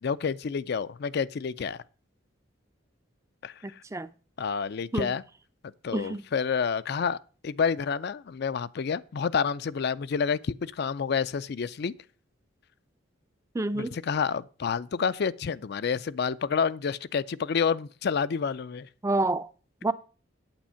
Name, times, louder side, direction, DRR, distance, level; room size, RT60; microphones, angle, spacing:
voice 1, 0.0-1.8 3.4-3.8 4.4-5.2 5.8-7.2 7.4-11.9 13.8-18.9, left 6 dB, 55° left, 0.4 m, -29 dB
voice 2, 3.6-4.1 4.9-5.1 5.9-6.2 13.5-14.0 19.0-19.5 19.8-19.9, right 2 dB, 15° right, 0.4 m, -28 dB
8.9 x 8.1 x 5.6 m
head